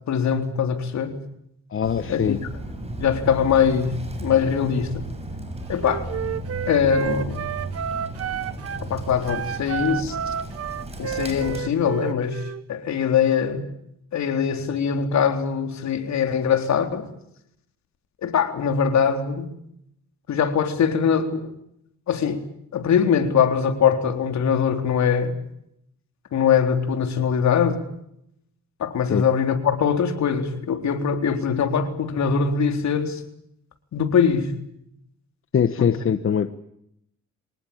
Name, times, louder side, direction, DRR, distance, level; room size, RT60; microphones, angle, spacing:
voice 1, 0.1-1.2 2.1-2.4 3.0-5.1 5.7-6.1 6.7-7.4 8.8-10.3 11.0-13.7 14.1-17.1 18.2-19.5 20.3-21.5 22.1-22.4 22.7-25.4 26.3-27.8 28.8-33.2 33.9-34.5 35.8-35.9, left 7 dB, 65° left, 3.8 m, -22 dB
voice 2, 1.7-2.4 29.1-29.2 35.5-36.5, left 7 dB, 45° left, 1.3 m, -22 dB
Bird, 1.8-11.6, right 1 dB, 20° right, 7.1 m, -34 dB
Wind instrument woodwind instrument, 5.8-8.9 9.2-12.6, right 8 dB, 50° right, 1.2 m, -31 dB
25.0 x 19.0 x 8.7 m
cardioid pair, 90°, 30 cm